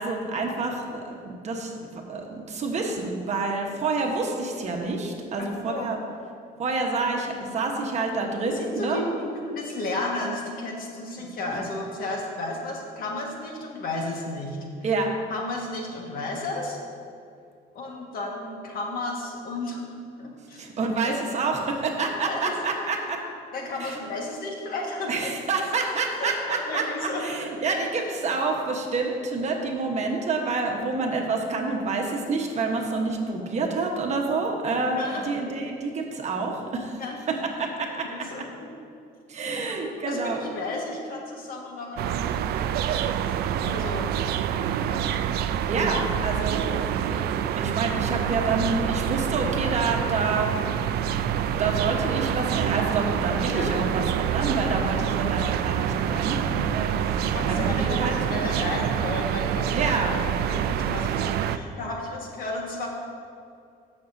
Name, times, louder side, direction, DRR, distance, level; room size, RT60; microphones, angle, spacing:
voice 1, 0.0-6.0 6.6-9.0 11.2-11.3 11.5-11.6 14.8-15.1 20.6-23.2 23.8-24.0 25.1-37.0 37.3-38.1 39.3-40.4 45.7-50.7 51.6-58.1 59.7-60.2, right 3 dB, 40° right, 1 dB, 1.2 m, -28 dB
voice 2, 5.4-5.9 8.0-8.1 8.4-14.6 15.3-16.8 17.7-19.8 20.2-20.7 21.0-21.4 22.2-22.5 23.5-25.4 26.2-27.8 35.0-35.2 37.0-37.2 38.0-38.4 39.6-39.8 40.1-42.4 42.9-43.0 43.6-44.1 44.8-45.0 53.5-53.7 55.9-56.1 57.2-62.9, left 2 dB, 60° left, -1 dB, 1.6 m, -33 dB
sound 1, 42.0-61.6, right 9 dB, 70° right, 0.4 m, -26 dB
14.0 x 6.2 x 2.7 m, 2.4 s
cardioid pair, 110°, 17 cm